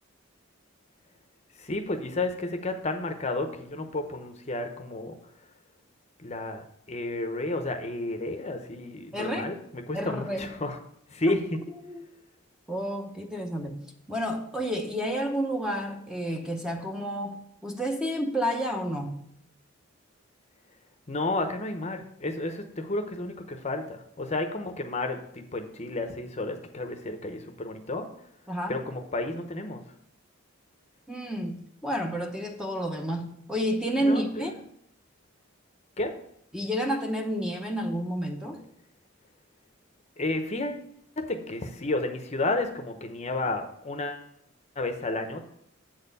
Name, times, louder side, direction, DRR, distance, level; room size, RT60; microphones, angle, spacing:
voice 1, 1.6-5.2 6.2-10.8 11.1-11.6 21.1-28.1 28.7-29.9 34.0-34.6 36.0-36.1 40.2-40.9 41.2-44.3 44.8-45.4, left 2 dB, 30° left, 6 dB, 0.8 m, -31 dB
voice 2, 9.1-9.5 9.9-10.5 11.3-11.4 11.8-12.1 12.7-13.8 14.1-19.2 28.5-28.8 31.1-34.5 36.5-38.6, equal, 5° right, 3 dB, 0.8 m, -30 dB
7.9 x 4.3 x 6.7 m, 0.73 s
head